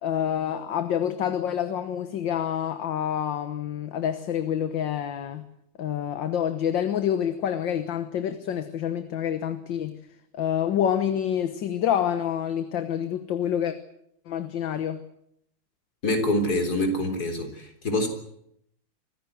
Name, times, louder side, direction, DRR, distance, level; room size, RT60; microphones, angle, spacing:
voice 1, 0.0-5.5 5.8-10.0 10.3-13.8 14.3-15.0, left 9 dB, 70° left, 10 dB, 1.9 m, -27 dB
voice 2, 16.0-18.1, left 1 dB, 50° left, 6 dB, 4.3 m, -25 dB
25.0 x 15.5 x 9.2 m, 0.73 s
omnidirectional pair, 2.2 m